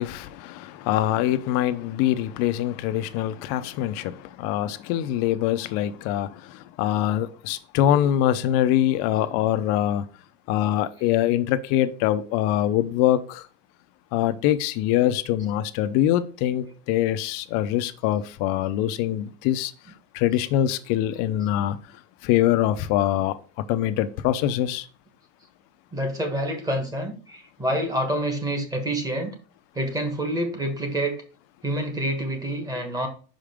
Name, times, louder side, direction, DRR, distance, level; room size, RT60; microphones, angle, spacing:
voice 1, 0.0-10.1 10.5-13.5 14.1-19.7 20.1-21.8 22.2-23.3 23.7-24.9, left 12 dB, 50° left, 0.6 m, -24 dB
voice 2, 7.8-8.1 9.2-9.3 10.6-10.9 25.9-29.3 29.7-31.2 31.6-33.1, right 1 dB, 10° right, 1.2 m, -28 dB
5.6 x 5.0 x 3.6 m
supercardioid pair, 145°, 31 cm